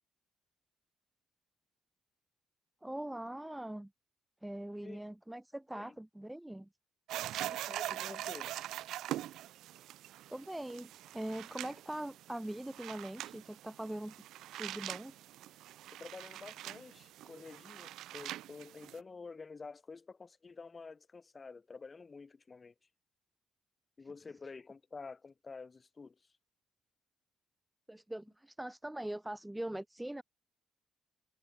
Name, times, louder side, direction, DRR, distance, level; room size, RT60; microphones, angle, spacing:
voice 1, 2.8-3.9 4.4-6.7 10.3-14.1 14.6-15.1 27.9-30.2, right 1 dB, 5° right, 0.7 m, -42 dB
sound 1, 7.1-19.0, right 14 dB, 85° right, 1.1 m, -43 dB
voice 2, 7.4-8.6 15.9-22.7 24.0-26.3, left 4 dB, 30° left, 4.4 m, -49 dB
cardioid pair, 90°, 0 cm